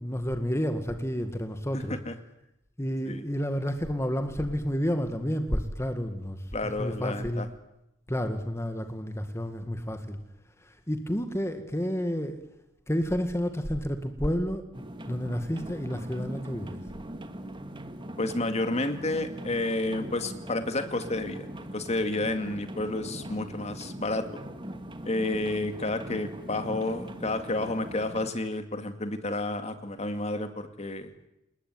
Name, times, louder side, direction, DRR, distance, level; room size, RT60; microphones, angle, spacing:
voice 1, 0.0-2.0 2.8-7.5 8.1-10.2 10.6-12.4 12.9-16.8, equal, 15° left, 7 dB, 1.9 m, -30 dB
voice 2, 1.7-2.2 3.1-3.2 6.5-7.5 18.2-21.5 21.7-24.3 25.1-31.1, left 2 dB, 35° left, 8 dB, 2.2 m, -30 dB
sound 1, 14.7-28.3, right 1 dB, 25° right, 2.0 m, -41 dB
29.0 x 19.5 x 9.7 m, 0.88 s
head